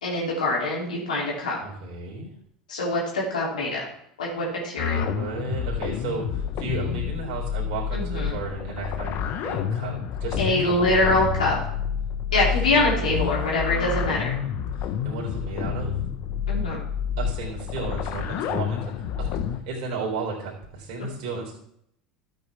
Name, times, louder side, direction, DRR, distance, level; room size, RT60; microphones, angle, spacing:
voice 1, 0.0-1.6 2.7-3.9 4.2-5.1 7.9-8.3 10.4-11.6 12.3-14.3 16.5-16.8, left 2 dB, 80° left, -4 dB, 3.1 m, -24 dB
voice 2, 1.6-2.3 4.9-11.2 12.3-13.4 14.8-16.0 17.2-18.9 19.2-21.5, right 4 dB, 60° right, -2 dB, 3.6 m, -34 dB
sound 1, 4.8-19.6, left 8 dB, 50° left, 1.1 m, -29 dB
13.0 x 8.1 x 3.5 m, 0.71 s
hypercardioid pair, 80°, 4 cm